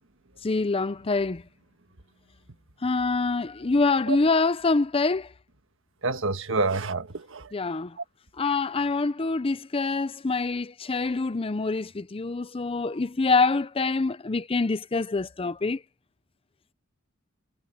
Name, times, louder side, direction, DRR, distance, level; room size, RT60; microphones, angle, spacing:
voice 1, 0.4-1.4 2.8-5.3 7.5-8.0 8.4-15.8, left 3 dB, 25° left, 0.6 m, -25 dB
voice 2, 6.0-7.5 8.0-8.1, right 3 dB, 65° right, 1.5 m, -28 dB
head